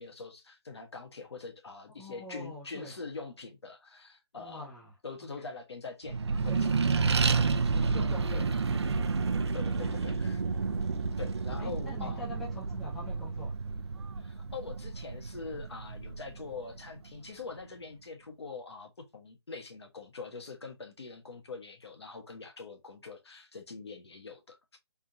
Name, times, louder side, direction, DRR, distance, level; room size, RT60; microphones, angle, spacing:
voice 1, 0.0-4.7 5.0-6.6 9.5-10.6 11.2-12.2 14.2-24.8, left 4 dB, 75° left, 1.1 m, -44 dB
voice 2, 2.0-2.9 4.4-4.9 5.4-5.5 6.5-6.8 7.6-8.9 9.8-10.2 11.6-13.5, left 2 dB, ahead, 0.3 m, -45 dB
Accelerating revving vroom, 6.1-17.0, right 4 dB, 80° right, 0.5 m, -30 dB
3.6 x 2.5 x 2.7 m
hypercardioid pair, 160°, 14 cm